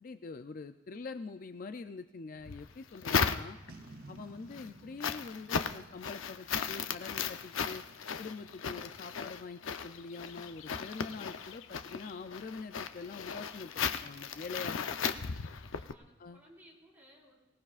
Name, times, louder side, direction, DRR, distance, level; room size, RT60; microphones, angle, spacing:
voice 1, 0.0-3.6 4.1-7.8 8.2-15.0 16.2-16.4, left 4 dB, 45° left, 9 dB, 0.4 m, -44 dB
sound 1, 2.4-3.9 4.3-15.9, left 6 dB, 85° left, 0.6 m, -36 dB
Boom, 3.7-7.0, right 2 dB, 45° right, 0.7 m, -53 dB
voice 2, 14.8-15.2 15.7-17.4, equal, 10° right, -5 dB, 4.3 m, -60 dB
24.0 x 17.5 x 2.5 m, 1.1 s
head